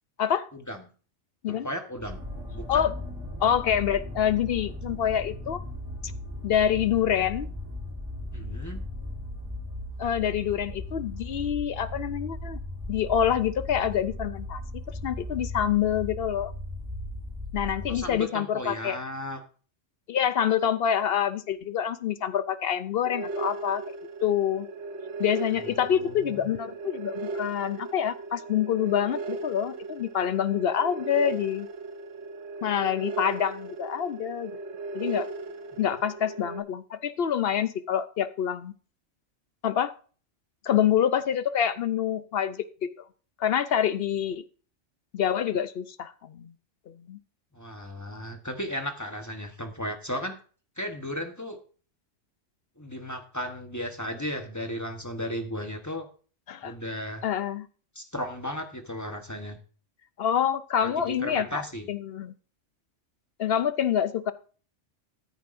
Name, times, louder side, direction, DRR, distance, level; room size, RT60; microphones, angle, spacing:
voice 1, 0.5-0.8 1.5-2.2 2.5-2.8 8.3-8.8 17.9-19.4 25.6-26.5 35.7-35.8 47.5-50.3 50.8-51.6 52.8-56.1 56.6-57.3 57.9-59.6 60.8-61.9, equal, 15° left, 5 dB, 1.0 m, -35 dB
sound 1, 2.0-18.2, left 1 dB, 15° right, 1.5 m, -37 dB
voice 2, 3.4-5.6 6.4-7.5 10.0-12.6 12.9-14.6 14.9-16.5 17.5-19.0 20.1-23.8 24.2-24.7 25.2-31.7 32.6-34.5 34.9-35.3 35.8-38.7 39.6-39.9 40.6-42.9 43.4-44.4 45.1-46.5 46.9-47.2 56.5-56.7 57.2-57.7 60.2-61.6 61.9-62.3 63.4-64.3, left 9 dB, 60° left, 13 dB, 0.7 m, -26 dB
sound 2, 23.0-36.6, right 3 dB, 70° right, 1.3 m, -37 dB
13.5 x 9.1 x 2.5 m, 0.40 s
omnidirectional pair, 1.2 m